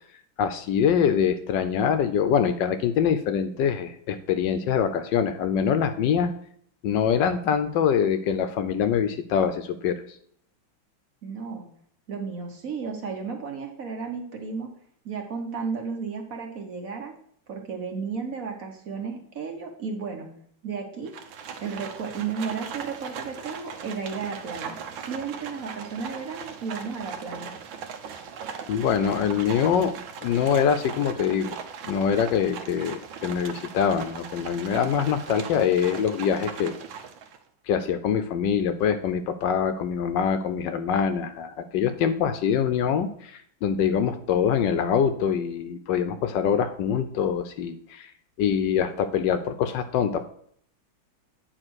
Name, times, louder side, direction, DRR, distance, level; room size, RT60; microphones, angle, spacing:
voice 1, 0.4-6.3 6.8-10.0 28.7-29.9 30.2-31.6 31.8-36.7 37.7-48.1 48.4-50.2, left 7 dB, 75° left, 9 dB, 1.2 m, -24 dB
voice 2, 11.2-11.7 12.1-14.7 15.0-17.1 17.5-20.3 20.6-21.1 21.6-24.7 25.1-27.5, right 5 dB, 50° right, 2 dB, 1.2 m, -33 dB
Livestock farm animals working animals, 21.1-37.4, right 7 dB, 75° right, 1.6 m, -39 dB
9.0 x 4.1 x 6.2 m, 0.64 s
omnidirectional pair, 2.2 m